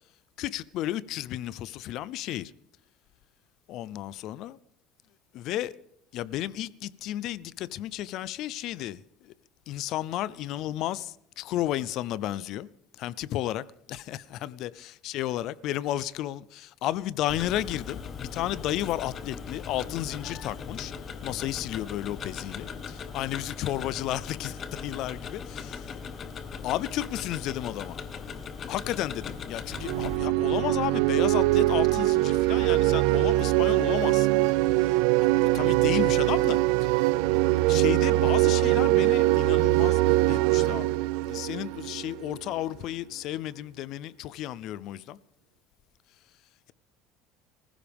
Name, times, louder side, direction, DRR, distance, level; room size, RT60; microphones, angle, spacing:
voice 1, 0.4-2.5 3.7-4.6 5.3-5.8 6.1-9.3 9.7-12.7 13.0-20.9 21.2-22.7 23.1-25.9 26.6-28.0 28.7-34.3 34.5-37.0 37.3-40.9 41.2-45.2, left 13 dB, 45° left, 0.5 m, -33 dB
Tick-tock, 17.3-30.2, left 6 dB, 25° left, 1.1 m, -39 dB
sound 1, 29.7-42.4, right 18 dB, 65° right, 0.5 m, -23 dB
24.5 x 15.0 x 3.5 m
cardioid pair, 175°, 0 cm